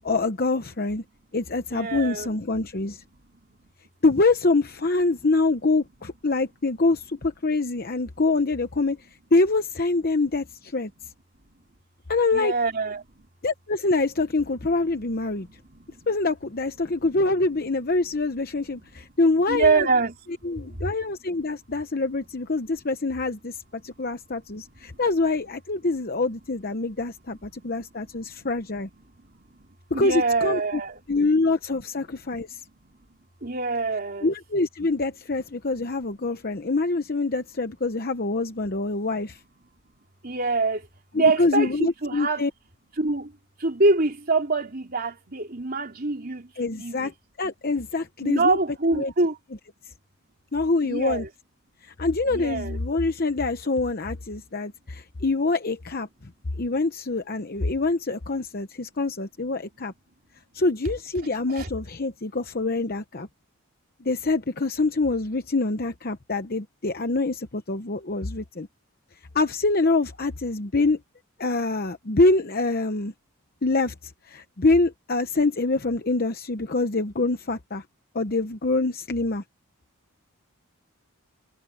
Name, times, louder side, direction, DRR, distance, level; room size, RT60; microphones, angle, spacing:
voice 1, 0.0-1.0 1.3-3.0 4.0-9.0 9.3-10.9 12.1-12.5 13.4-15.5 16.1-19.9 20.4-23.6 23.8-28.9 29.9-30.8 31.1-32.6 34.2-39.4 41.1-42.5 46.6-47.1 47.4-48.6 48.9-49.1 50.5-51.2 52.0-56.1 56.6-59.9 60.5-63.3 64.0-68.7 69.3-71.0 71.4-73.1 73.6-73.9 74.3-77.8 78.1-79.4, left 3 dB, 45° left, 0.9 m, -25 dB
voice 2, 1.7-2.3 3.3-3.4 12.3-13.0 15.4-16.1 18.7-18.9 19.5-20.1 20.8-20.9 24.8-25.0 27.6-27.7 29.3-29.7 29.9-31.0 32.8-32.9 33.4-34.3 40.2-40.9 41.1-42.4 43.0-43.3 43.6-47.1 48.2-49.4 50.8-51.3 52.3-52.8 61.5-61.7, right 3 dB, 45° right, 3.3 m, -25 dB
head